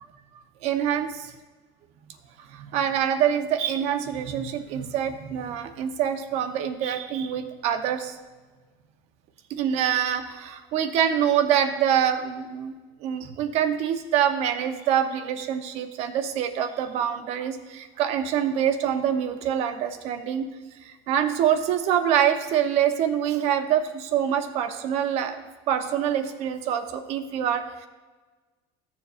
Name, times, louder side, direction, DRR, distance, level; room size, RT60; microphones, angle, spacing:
voice 1, 0.6-1.1 2.5-8.1 9.5-12.8 13.0-20.5 20.8-25.4 25.7-27.9, right 9 dB, 55° right, 7 dB, 0.8 m, -25 dB
14.5 x 7.0 x 2.5 m, 1.3 s
supercardioid pair, 140°, 14 cm